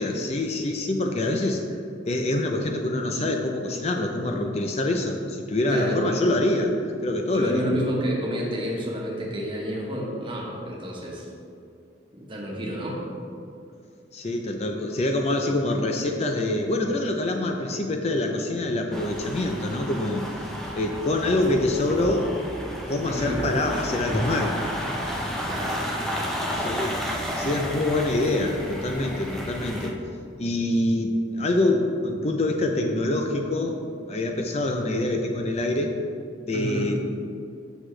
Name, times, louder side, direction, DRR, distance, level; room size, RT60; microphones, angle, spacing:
voice 1, 0.0-1.6 2.1-6.7 7.0-7.7 14.1-20.5 20.8-22.3 22.9-24.6 26.6-27.0 27.4-30.0 30.4-33.8 34.1-35.9 36.5-37.0, left 2 dB, 35° left, 3 dB, 0.5 m, -25 dB
voice 2, 5.7-6.2 7.3-11.3 12.1-13.0 23.0-23.4 25.5-25.8 26.6-26.8 36.5-36.9, equal, 30° right, -3 dB, 1.3 m, -30 dB
sound 1, 18.9-29.9, equal, ahead, 0.7 m, -32 dB
8.0 x 6.2 x 3.2 m, 2.4 s
head